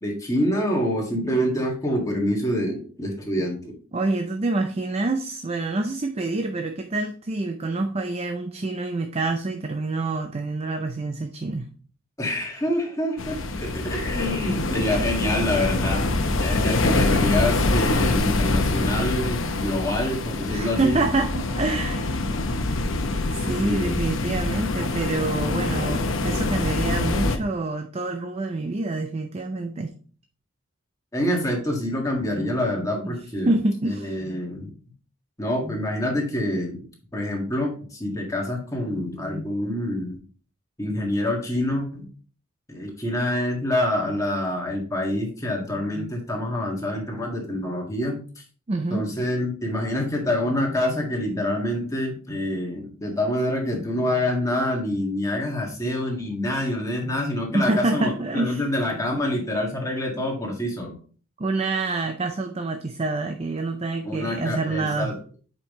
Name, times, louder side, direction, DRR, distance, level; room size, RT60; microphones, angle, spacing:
voice 1, 0.0-3.7 12.2-16.1 16.4-21.0 23.6-24.0 31.1-33.5 33.8-34.7 35.4-36.8 37.1-40.1 40.8-42.1 42.7-48.2 48.9-60.9 64.0-65.2, left 1 dB, 15° left, 0 dB, 1.7 m, -26 dB
voice 2, 3.9-11.7 20.5-22.1 23.3-29.9 33.5-34.2 48.7-49.1 57.5-58.7 61.4-65.1, right 2 dB, 30° right, 6 dB, 0.5 m, -27 dB
sound 1, 13.2-27.4, left 2 dB, 75° left, 0.8 m, -25 dB
7.4 x 5.2 x 3.1 m, 0.41 s
head